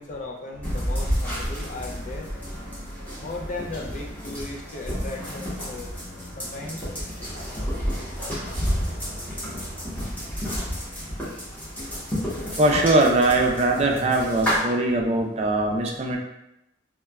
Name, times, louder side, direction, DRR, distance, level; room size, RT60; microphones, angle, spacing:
voice 1, 0.0-2.3 3.2-5.9 6.4-6.9, left 2 dB, 40° left, 0 dB, 0.4 m, -36 dB
sound 1, 0.6-14.6, equal, 10° left, 0.8 m, -31 dB
sound 2, 7.2-10.4, equal, 65° left, 0.8 m, -40 dB
voice 2, 12.6-16.2, right 2 dB, 35° right, 2 dB, 0.3 m, -21 dB
3.1 x 2.1 x 2.2 m, 0.86 s
head